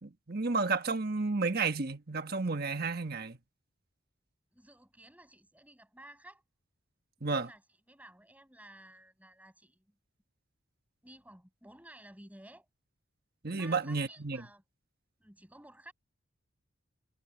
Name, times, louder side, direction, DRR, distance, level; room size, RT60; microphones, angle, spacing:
voice 1, 0.0-3.4 7.2-7.5 13.4-14.4, right 4 dB, 45° right, 1.5 m, -32 dB
voice 2, 4.5-6.4 7.2-7.6 7.9-10.0 11.0-12.7 13.5-14.6 15.2-15.9, right 1 dB, 5° right, 7.2 m, -54 dB
head